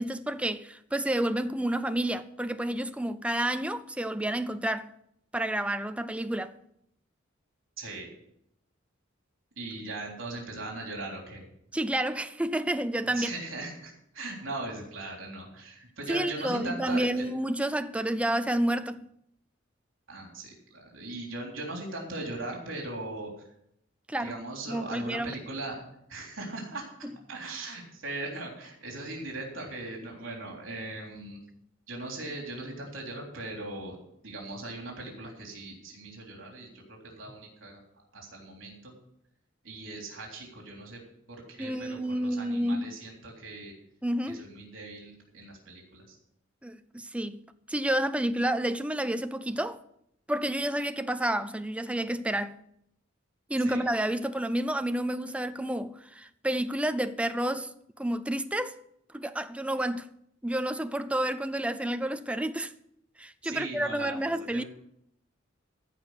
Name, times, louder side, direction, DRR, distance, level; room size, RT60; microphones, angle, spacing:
voice 1, 0.0-4.9 5.3-6.5 11.7-13.3 16.1-19.1 24.1-24.4 24.7-25.3 27.0-27.1 41.6-43.0 44.0-44.5 46.6-47.4 47.7-49.8 50.3-52.6 53.5-57.7 58.0-58.8 59.1-60.1 60.4-62.7 63.2-64.6, right 1 dB, 5° right, 0.5 m, -30 dB
voice 2, 7.8-8.1 9.6-11.4 13.0-17.3 20.1-23.3 24.2-25.8 26.1-26.9 27.3-31.4 31.9-34.0 34.2-37.8 38.1-38.9 39.6-41.0 41.3-43.7 44.3-46.2 53.6-53.8 63.4-64.7, right 2 dB, 75° right, 3.5 m, -39 dB
15.0 x 5.3 x 8.2 m
head